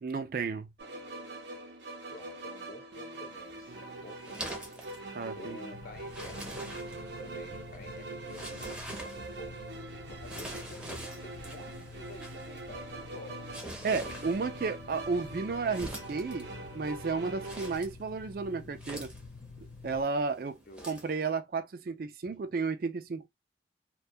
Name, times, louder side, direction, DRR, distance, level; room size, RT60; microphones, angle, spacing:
voice 1, 0.0-0.7 5.1-5.6 13.8-19.1 19.8-20.6 20.9-23.3, right 4 dB, 55° right, 0.4 m, -33 dB
sound 1, 0.8-17.8, right 2 dB, 80° right, 0.7 m, -43 dB
voice 2, 2.1-4.5 4.9-6.8 7.2-8.8 9.1-13.5 20.7-21.0 22.3-22.4, left 1 dB, 50° left, 0.8 m, -50 dB
sound 2, 3.4-21.1, right 1 dB, 5° right, 0.6 m, -47 dB
sound 3, 5.7-20.0, left 4 dB, 90° left, 0.6 m, -49 dB
2.2 x 2.2 x 2.6 m
head